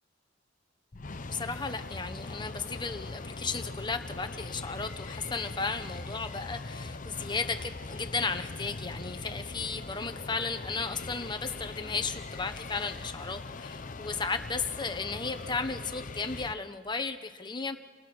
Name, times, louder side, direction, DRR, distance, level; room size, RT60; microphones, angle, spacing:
sound 1, 0.9-16.5, left 3 dB, 40° left, 0.7 m, -41 dB
voice 1, 1.3-17.8, left 4 dB, 25° left, 8 dB, 1.2 m, -34 dB
29.0 x 22.5 x 6.3 m, 1.5 s
head